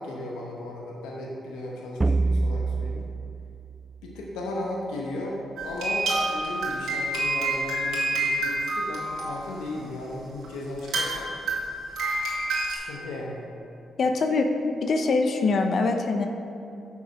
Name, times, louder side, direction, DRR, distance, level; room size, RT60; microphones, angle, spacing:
voice 1, 0.0-3.1 4.0-5.4 5.6-11.3 12.7-13.4, left 1 dB, 90° left, -2 dB, 1.0 m, -35 dB
sound 1, 2.0-4.6, right 3 dB, 25° right, 0.3 m, -27 dB
sound 2, 5.6-9.8 10.4-10.5 10.8-12.8, right 2 dB, 80° right, 1.8 m, -28 dB
voice 2, 14.0-14.5 14.8-16.3, left 3 dB, 60° left, 5 dB, 0.7 m, -23 dB
7.2 x 6.5 x 5.0 m, 2.7 s
supercardioid pair, 55°, 0 cm